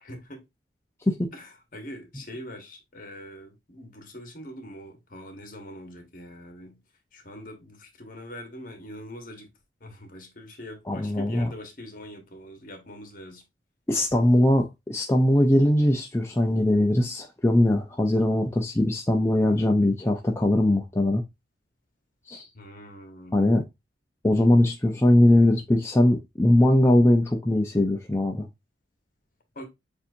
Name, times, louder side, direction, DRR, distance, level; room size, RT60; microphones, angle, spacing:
voice 1, 0.0-0.4 1.3-6.8 7.1-9.5 9.8-13.4 22.5-23.6 29.5-29.7, equal, 45° left, 1.3 m, -43 dB
voice 2, 10.9-11.5 13.9-21.2 22.3-22.5 23.3-23.6 24.2-28.5, left 1 dB, 15° left, 0.4 m, -21 dB
7.1 x 2.6 x 2.6 m
head